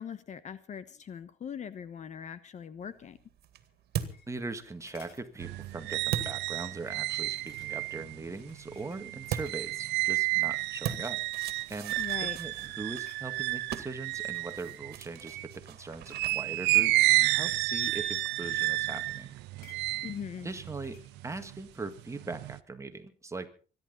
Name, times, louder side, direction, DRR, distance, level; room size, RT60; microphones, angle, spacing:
voice 1, 0.0-3.2 12.0-12.4 20.0-20.5, left 7 dB, 45° left, 14 dB, 1.1 m, -41 dB
sound 1, 2.8-7.2 9.3-18.1, right 9 dB, 70° right, 2.0 m, -42 dB
sound 2, 3.7-4.6 4.9-5.3 5.8-6.0 6.3-6.4 7.4-8.0 8.4-10.0 10.5-10.7 11.1-11.6 12.2-12.4 12.7-13.3 14.0-15.6 16.4-18.9 19.1-21.1 21.4-21.5, left 6 dB, 65° left, 3.5 m, -60 dB
voice 2, 4.3-11.2 11.7-19.3 20.4-21.0 21.2-23.5, right 3 dB, 15° right, 8 dB, 1.7 m, -40 dB
sound 3, 5.4-15.6 16.1-21.6 22.0-22.6, right 19 dB, 85° right, 0.6 m, -31 dB
25.5 x 11.0 x 4.0 m, 0.37 s
cardioid pair, 110°, 17 cm